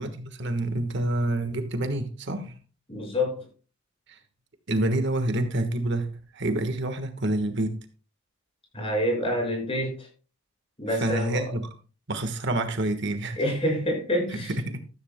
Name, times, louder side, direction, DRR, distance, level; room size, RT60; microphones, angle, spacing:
voice 1, 0.0-2.6 4.1-4.2 4.7-6.1 6.3-7.8 10.9-11.7 12.1-13.4 14.4-14.8, right 1 dB, 60° right, 1.4 m, -27 dB
voice 2, 2.9-3.5 8.7-10.1 10.8-11.5 13.4-14.5, equal, 30° left, 6.0 m, -27 dB
13.5 x 13.5 x 2.2 m
head